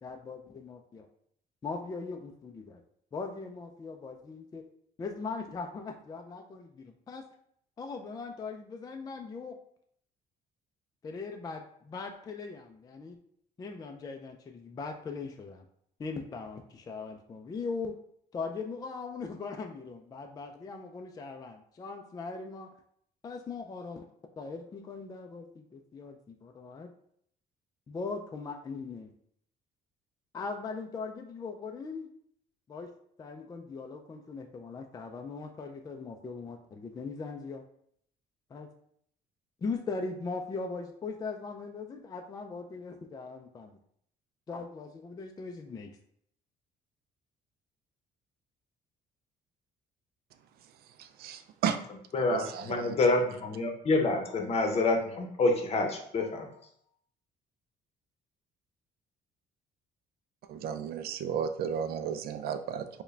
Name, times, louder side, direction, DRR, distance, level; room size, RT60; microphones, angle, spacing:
voice 1, 0.0-1.1 1.6-2.8 3.1-4.6 5.0-7.3 7.8-9.6 11.0-13.2 13.6-15.6 16.0-18.0 18.3-22.7 23.2-24.1 24.4-26.9 27.9-29.1 30.3-32.1 32.7-32.9 33.2-37.6 38.5-38.7 39.6-43.7 44.5-45.9, left 4 dB, 20° left, 4 dB, 0.3 m, -40 dB
voice 2, 51.0-51.8 52.2-53.0 60.5-63.0, right 8 dB, 65° right, 9 dB, 0.4 m, -34 dB
voice 3, 52.1-56.5, left 2 dB, 40° left, 3 dB, 0.8 m, -27 dB
4.6 x 2.2 x 3.2 m, 0.68 s
cardioid pair, 110°, 17 cm